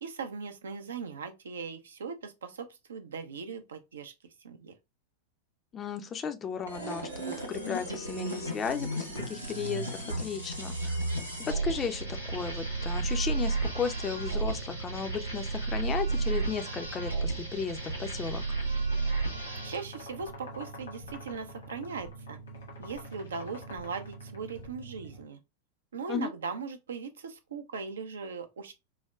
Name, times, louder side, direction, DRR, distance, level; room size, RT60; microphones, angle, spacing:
voice 1, 0.0-4.1 4.4-4.7 19.6-22.4 22.8-25.4 25.9-28.7, right 5 dB, 65° right, 0.5 m, -39 dB
voice 2, 5.7-11.0 11.5-18.4 26.1-26.3, left 6 dB, 25° left, 0.4 m, -35 dB
sound 1, 6.7-19.9, right 3 dB, 85° right, 0.8 m, -33 dB
sound 2, 12.0-25.2, right 3 dB, 55° left, 0.8 m, -47 dB
sound 3, 18.9-24.7, left 3 dB, 75° left, 1.2 m, -49 dB
4.7 x 2.1 x 2.2 m
figure-of-eight pair, 90°, 0 cm